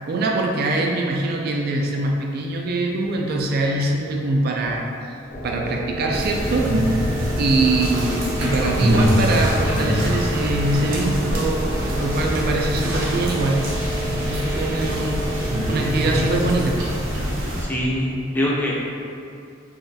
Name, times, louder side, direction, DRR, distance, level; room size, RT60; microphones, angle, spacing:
voice 1, 0.1-5.1 5.4-6.8 7.4-13.7 14.0-16.9 17.6-17.7, right 2 dB, 50° right, 0 dB, 0.3 m, -23 dB
sound 1, 5.3-17.0, equal, 65° left, 0.5 m, -31 dB
sound 2, 6.1-17.6, equal, 75° right, 0.8 m, -24 dB
voice 2, 17.6-18.7, left 1 dB, 10° left, -5 dB, 0.5 m, -24 dB
3.8 x 3.0 x 2.7 m, 2.5 s
head